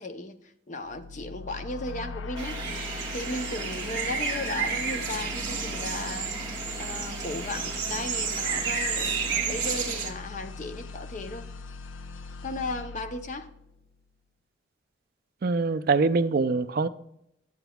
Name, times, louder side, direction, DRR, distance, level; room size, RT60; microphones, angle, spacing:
voice 1, 0.0-2.6 3.1-6.5 6.8-11.4 12.4-13.5, left 2 dB, 40° left, 0.6 m, -36 dB
sound 1, 0.8-13.9, left 4 dB, 80° left, 0.5 m, -40 dB
sound 2, 2.4-10.1, right 5 dB, 20° right, 1.4 m, -31 dB
voice 2, 15.4-16.9, right 4 dB, 50° right, 0.4 m, -24 dB
12.0 x 7.8 x 2.3 m
head